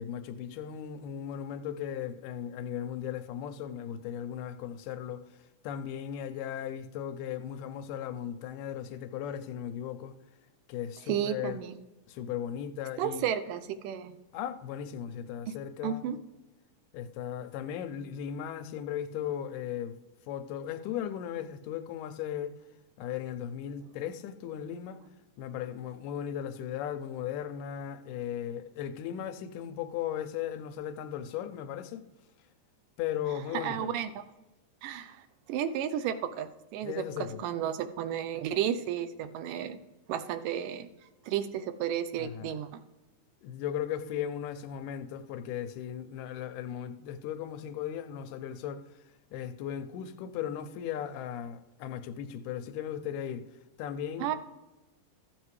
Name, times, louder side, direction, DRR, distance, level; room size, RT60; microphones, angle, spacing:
voice 1, 0.0-5.3 5.6-10.1 10.7-11.6 12.1-13.3 14.3-16.1 16.9-20.0 20.3-22.6 23.0-25.0 25.4-32.1 33.0-33.9 36.8-37.3 42.2-42.6 43.4-48.8 49.3-53.5 53.8-54.4, left 9 dB, 85° left, 2.2 m, -37 dB
voice 2, 11.1-11.8 13.0-14.2 15.5-15.6 15.8-16.2 33.5-34.2 34.8-39.8 40.1-40.9 41.3-42.7 54.2-54.4, right 9 dB, 90° right, 2.3 m, -33 dB
14.5 x 7.8 x 3.2 m
omnidirectional pair, 3.7 m